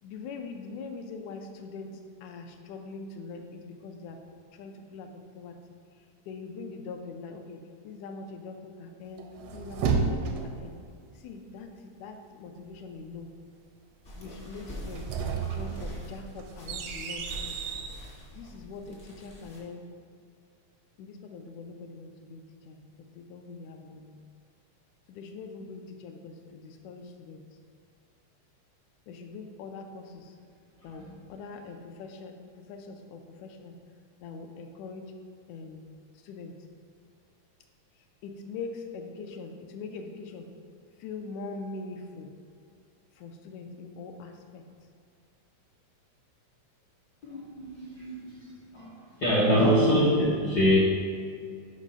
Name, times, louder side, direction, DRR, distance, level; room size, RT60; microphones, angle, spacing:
voice 1, 0.0-5.6 5.9-9.2 9.5-10.8 11.1-13.3 14.1-15.1 15.4-17.7 18.4-19.8 21.0-24.1 25.1-27.4 29.1-30.4 30.8-33.8 34.2-35.1 35.5-35.9 36.1-36.6 38.0-40.5 41.0-42.3 43.1-44.6, left 4 dB, 85° left, 4 dB, 2.0 m, -43 dB
sound 1, 9.2-10.7 14.7-18.0, right 5 dB, 80° right, 1.5 m, -32 dB
sound 2, 14.0-19.6, equal, 35° left, 0.6 m, -44 dB
voice 2, 47.2-48.5 48.7-50.8, equal, 70° left, -7 dB, 0.9 m, -24 dB
5.4 x 5.0 x 5.4 m, 2.3 s
omnidirectional pair, 3.4 m